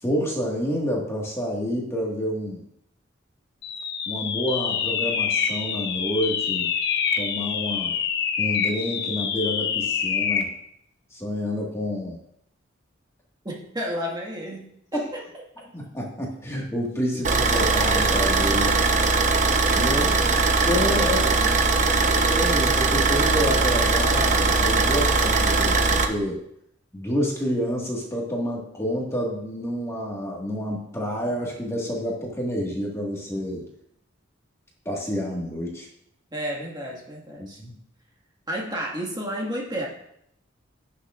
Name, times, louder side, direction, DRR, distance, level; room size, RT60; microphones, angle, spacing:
voice 1, 0.0-2.7 4.1-6.7 7.2-8.0 8.4-10.5 11.1-12.2 14.9-15.1 15.7-18.7 19.7-20.2 20.7-21.2 21.5-21.6 22.1-26.4 26.9-33.7 34.9-35.9 37.4-37.7, equal, 15° left, -2 dB, 1.7 m, -28 dB
sound 1, 3.6-10.6, left 7 dB, 60° left, 0.8 m, -26 dB
voice 2, 13.4-15.2 20.3-20.6 21.0-21.6 36.3-37.6 38.5-39.9, equal, 20° right, -2 dB, 1.7 m, -32 dB
Car / Idling, 17.2-26.1, right 3 dB, 40° right, 0.8 m, -20 dB
16.5 x 6.6 x 2.5 m, 0.74 s
head